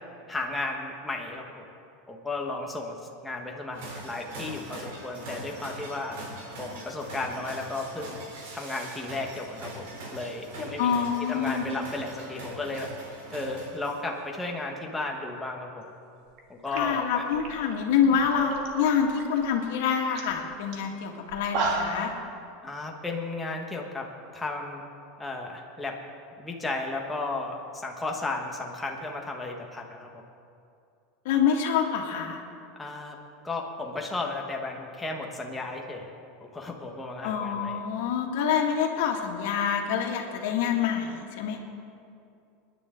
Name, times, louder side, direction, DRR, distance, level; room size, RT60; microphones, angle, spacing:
voice 1, 0.3-1.6 2.1-2.9 3.2-6.2 6.6-8.2 8.5-12.9 13.3-15.9 16.5-17.3 22.6-24.1 24.3-24.8 25.2-26.0 26.4-30.2 32.8-33.2 33.4-36.1 36.5-37.8, left 2 dB, 5° left, 0 dB, 1.3 m, -34 dB
sound 1, 3.7-14.2, right 1 dB, 85° right, 3.7 m, -42 dB
voice 2, 10.8-11.7 16.7-22.1 31.3-32.4 37.2-41.6, left 7 dB, 70° left, 2 dB, 2.0 m, -26 dB
sound 2, 16.3-16.4 16.7-18.7 19.0-19.5 19.8-19.9 20.1-20.3 20.7-20.8 21.3-22.1, right 3 dB, 50° right, 2.0 m, -32 dB
25.5 x 10.5 x 3.8 m, 2.5 s
supercardioid pair, 170°, 0 cm